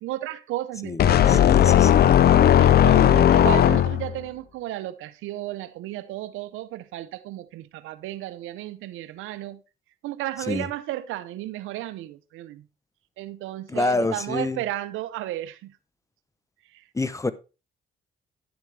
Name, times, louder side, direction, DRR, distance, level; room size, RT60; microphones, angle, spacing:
voice 1, 0.0-1.4 2.6-9.6 10.0-12.6 13.2-15.7, right 15 dB, 90° right, 0.7 m, -33 dB
voice 2, 0.8-2.1 10.5-10.7 13.7-14.6 17.0-17.3, left 2 dB, 15° left, 0.7 m, -27 dB
sound 1, 1.0-4.2, left 10 dB, 55° left, 0.5 m, -16 dB
10.5 x 7.0 x 3.3 m
cardioid pair, 90°, 20 cm